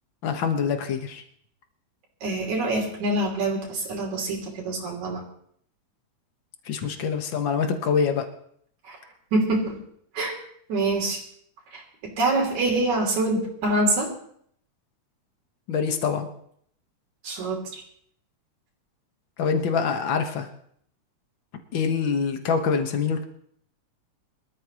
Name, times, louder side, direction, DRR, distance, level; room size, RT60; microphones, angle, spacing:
voice 1, 0.2-1.2 6.7-8.3 15.7-16.3 19.4-20.5 21.7-23.2, left 6 dB, 50° left, 5 dB, 1.6 m, -25 dB
voice 2, 2.2-5.2 8.9-9.0 9.3-9.8 10.1-10.4 10.7-11.2 11.7-11.8 12.2-14.1 17.2-17.8, right 2 dB, 65° right, 0 dB, 4.5 m, -25 dB
24.5 x 13.5 x 3.0 m, 0.65 s
omnidirectional pair, 3.6 m